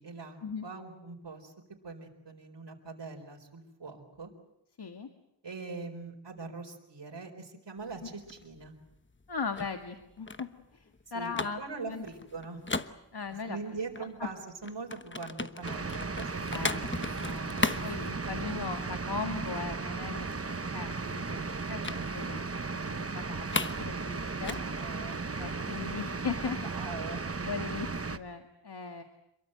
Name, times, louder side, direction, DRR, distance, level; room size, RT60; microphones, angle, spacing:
voice 1, 0.0-1.5 1.8-4.3 5.4-8.7 11.1-12.6 13.5-16.7 24.3-25.3 26.6-27.2, right 4 dB, 80° right, 2 dB, 4.2 m, -42 dB
voice 2, 4.8-5.1 9.3-11.6 11.9-12.0 13.1-13.6 16.5-22.5 22.9-24.6 25.3-26.6 27.4-29.0, left 5 dB, 65° left, 6 dB, 1.8 m, -39 dB
sound 1, 7.8-13.6 13.9-18.8 19.1-19.4 19.7-19.8 20.1-20.8 21.8-22.0 22.4-22.5 22.9-23.9 24.1-25.9, left 3 dB, 25° left, 1.1 m, -37 dB
sound 2, 15.6-28.2, right 4 dB, 35° right, 1.1 m, -36 dB
27.5 x 22.5 x 7.9 m, 0.84 s
wide cardioid pair, 75°, 42 cm